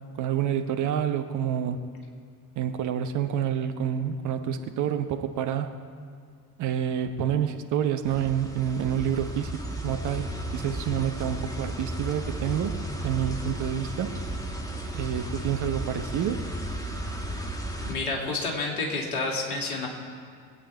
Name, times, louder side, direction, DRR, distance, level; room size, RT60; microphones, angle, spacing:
voice 1, 0.2-1.8 2.6-5.7 6.6-12.7 13.0-14.1 14.9-16.4, right 9 dB, 40° right, 7 dB, 1.1 m, -28 dB
sound 1, 8.0-18.0, right 1 dB, 10° left, 1.7 m, -34 dB
voice 2, 17.8-19.9, left 3 dB, 70° left, -1 dB, 2.7 m, -29 dB
22.5 x 8.8 x 4.7 m, 2.1 s
figure-of-eight pair, 60°, 45 cm